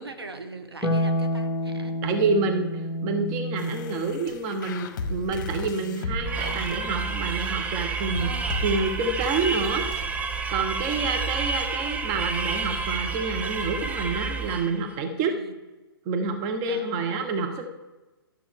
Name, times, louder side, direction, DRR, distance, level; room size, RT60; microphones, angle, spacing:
voice 1, 0.0-1.9 4.8-4.9 8.2-8.7 10.9-11.2 15.2-15.5 16.7-17.3, right 2 dB, 75° right, 6 dB, 1.2 m, -41 dB
Harp, 0.8-7.3 9.0-10.0, equal, 10° left, 1.2 m, -32 dB
voice 2, 2.0-9.9 10.5-15.4 16.0-17.6, right 4 dB, 30° right, 5 dB, 1.0 m, -28 dB
sound 1, 3.6-10.0, left 3 dB, 50° left, 0.9 m, -36 dB
sound 2, 6.2-14.8, right 4 dB, 10° right, 0.6 m, -29 dB
12.0 x 7.3 x 3.6 m, 1.1 s
figure-of-eight pair, 115°, 13 cm